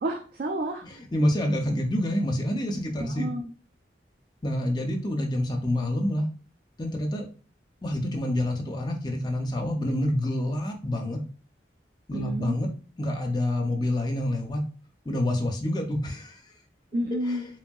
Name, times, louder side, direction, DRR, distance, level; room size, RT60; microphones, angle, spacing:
voice 1, 0.0-0.9 3.0-3.5 12.1-12.5 16.9-17.5, right 1 dB, 55° right, 3 dB, 0.3 m, -30 dB
voice 2, 1.1-3.3 4.4-6.3 6.8-7.3 7.8-11.2 12.1-12.7 13.0-14.6 15.1-16.4 17.3-17.4, left 1 dB, 25° left, 3 dB, 0.4 m, -27 dB
2.9 x 2.6 x 2.2 m, 0.38 s
head